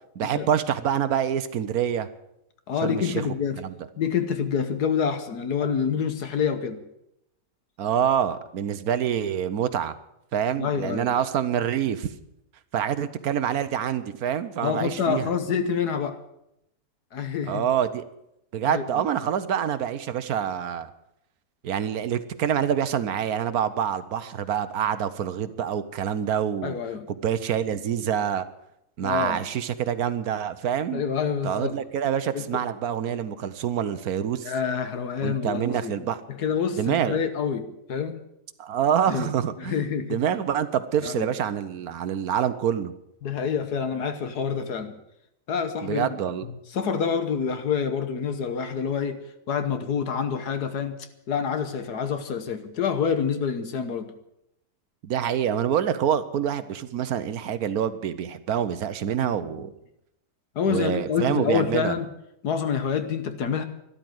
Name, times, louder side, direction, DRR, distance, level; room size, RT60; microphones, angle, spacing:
voice 1, 0.2-2.1 2.8-3.1 3.6-3.7 7.8-10.0 10.3-12.1 12.7-15.2 17.5-18.0 18.5-20.9 21.6-26.7 27.1-28.5 29.0-31.0 31.4-34.5 35.2-36.2 36.8-37.2 38.6-42.9 45.8-46.4 55.0-59.7 60.7-61.9, right 9 dB, 60° right, 12 dB, 1.2 m, -26 dB
voice 2, 2.7-3.6 4.0-6.8 10.6-11.1 14.6-16.2 17.1-17.6 18.6-19.1 26.6-27.1 29.0-29.4 30.9-31.8 32.3-32.5 34.4-38.2 39.1-39.3 39.6-40.2 41.0-41.3 43.2-44.9 45.5-46.2 46.7-49.2 49.5-51.0 51.3-54.1 59.2-59.6 60.5-62.1 62.4-63.6, left 6 dB, 65° left, 9 dB, 1.6 m, -27 dB
13.0 x 12.0 x 7.9 m, 0.82 s
omnidirectional pair, 1.9 m